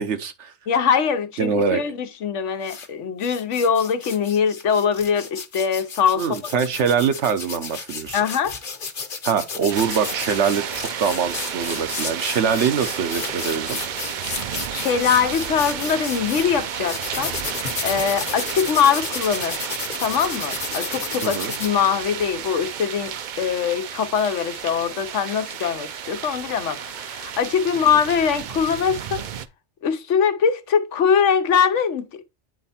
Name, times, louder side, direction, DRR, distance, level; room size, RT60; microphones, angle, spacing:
voice 1, 0.0-0.5 1.4-1.8 6.2-8.2 9.2-13.8 21.2-21.5, right 6 dB, 75° right, 1.1 m, -23 dB
voice 2, 0.7-6.2 8.1-8.6 14.7-17.3 17.8-19.6 20.0-29.2 29.8-32.2, left 7 dB, 90° left, 1.1 m, -22 dB
sound 1, 2.6-2.9 3.2-16.5 16.9-21.7, left 5 dB, 50° left, 1.1 m, -33 dB
sound 2, 9.7-29.5, right 8 dB, 55° right, 0.5 m, -32 dB
9.0 x 3.3 x 4.2 m
omnidirectional pair, 1.2 m